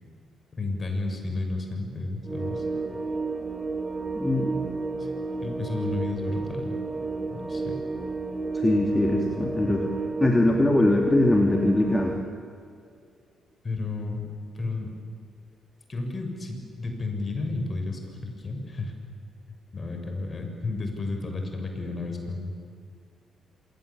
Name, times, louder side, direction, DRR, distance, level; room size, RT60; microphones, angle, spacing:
voice 1, 0.6-2.7 5.0-5.1 5.4-6.7 7.3-7.7 13.6-14.3 14.5-14.9 15.9-18.9 19.7-22.7, left 3 dB, 35° left, 4 dB, 7.0 m, -32 dB
sound 1, 2.3-12.2, right 3 dB, 25° right, 2.2 m, -31 dB
voice 2, 4.1-4.6 8.5-9.9 10.2-12.1, left 2 dB, 20° left, 1 dB, 3.3 m, -22 dB
28.0 x 24.0 x 8.7 m, 2.4 s
figure-of-eight pair, 40°, 0 cm